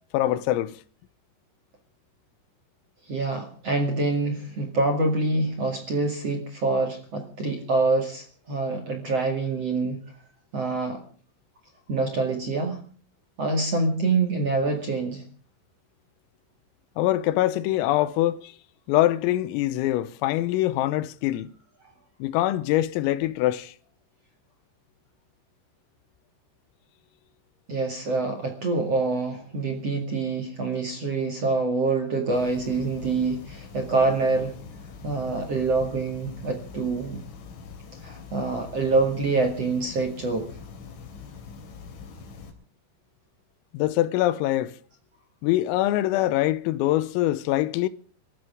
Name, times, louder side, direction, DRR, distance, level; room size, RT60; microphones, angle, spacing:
voice 1, 0.1-0.8 17.0-18.5 18.9-21.6 22.2-23.7 43.7-44.8 45.4-47.9, left 15 dB, 85° left, 3.6 m, -24 dB
voice 2, 3.1-10.0 10.5-11.0 11.9-12.8 13.4-15.2 27.7-34.5 35.0-37.2 38.0-40.5, right 3 dB, 45° right, 2.2 m, -26 dB
sound 1, 32.3-42.5, left 5 dB, 65° left, 5.4 m, -43 dB
25.0 x 14.5 x 3.6 m
omnidirectional pair, 5.9 m